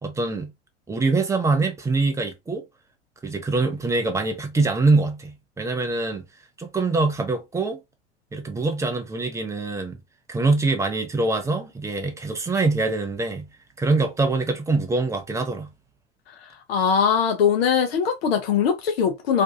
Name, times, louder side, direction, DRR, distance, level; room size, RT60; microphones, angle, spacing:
voice 1, 0.0-0.5 0.9-2.6 3.2-6.2 6.6-7.8 8.3-10.0 10.3-13.5 13.8-15.7, right 3 dB, 10° right, 0.5 m, -24 dB
voice 2, 16.7-19.4, left 7 dB, 60° left, 0.6 m, -21 dB
2.5 x 2.2 x 2.6 m
figure-of-eight pair, 80°, 34 cm